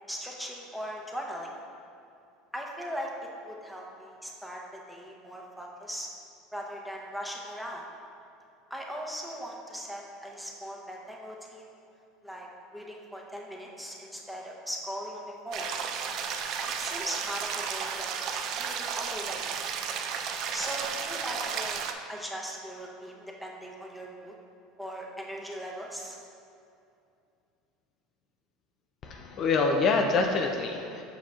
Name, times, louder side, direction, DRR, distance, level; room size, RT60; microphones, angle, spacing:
voice 1, 0.1-1.5 2.5-3.1 3.4-6.1 6.5-7.9 8.7-11.7 12.2-12.5 12.7-15.7 16.8-18.1 18.6-19.6 20.5-21.8 22.1-24.4 24.8-26.2, equal, ahead, -2 dB, 0.8 m, -39 dB
sound 1, 15.5-21.9, right 7 dB, 55° right, 0.4 m, -33 dB
voice 2, 29.0-31.0, left 4 dB, 45° left, 3 dB, 0.4 m, -26 dB
7.4 x 5.4 x 2.4 m, 2.6 s
supercardioid pair, 110°, 0 cm